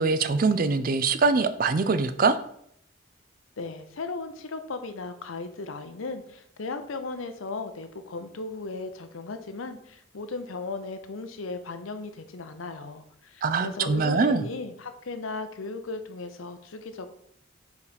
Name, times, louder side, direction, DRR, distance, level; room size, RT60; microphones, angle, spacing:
voice 1, 0.0-2.4 13.4-14.4, right 4 dB, 45° right, 12 dB, 0.4 m, -23 dB
voice 2, 3.6-17.1, left 3 dB, 85° left, 8 dB, 0.7 m, -36 dB
4.8 x 4.1 x 5.0 m, 0.69 s
head